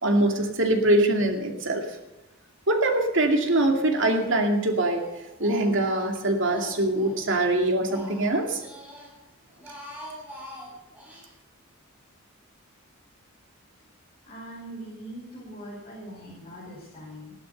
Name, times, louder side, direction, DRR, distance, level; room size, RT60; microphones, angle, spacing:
voice 1, 0.0-1.8 2.7-5.0 5.4-8.6, right 1 dB, 65° right, 4 dB, 2.5 m, -23 dB
Speech, 3.4-4.1 4.4-7.2 7.6-9.1 9.5-11.3, equal, 10° right, 6.2 m, -44 dB
voice 2, 14.2-17.3, right 1 dB, 30° left, -6 dB, 5.4 m, -41 dB
16.0 x 12.0 x 6.9 m, 0.97 s
head